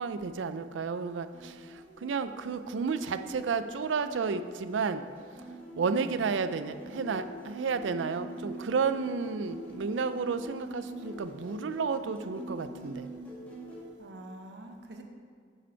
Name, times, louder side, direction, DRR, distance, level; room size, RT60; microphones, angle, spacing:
voice 1, 0.0-5.0 5.8-13.1, right 5 dB, 90° right, 11 dB, 0.4 m, -32 dB
sound 1, 1.3-13.8, equal, 10° left, 1.5 m, -44 dB
voice 2, 5.8-6.2 14.0-15.0, right 1 dB, 65° right, 4 dB, 0.9 m, -45 dB
9.9 x 5.1 x 4.5 m, 2.1 s
head